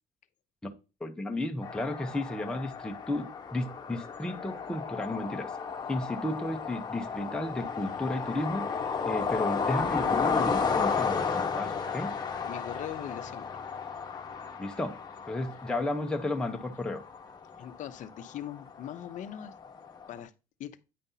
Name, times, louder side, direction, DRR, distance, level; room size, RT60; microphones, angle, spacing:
voice 1, 1.0-3.3 3.5-5.5 5.9-8.7 9.1-12.1 14.6-15.0 15.3-17.0, left 1 dB, 5° left, 0.8 m, -33 dB
sound 1, 1.6-20.2, left 5 dB, 25° left, 1.1 m, -33 dB
voice 2, 12.4-13.5 17.6-19.5 20.1-20.3 20.6-20.7, left 10 dB, 50° left, 0.7 m, -40 dB
9.2 x 5.2 x 2.8 m
cardioid pair, 130°, 16 cm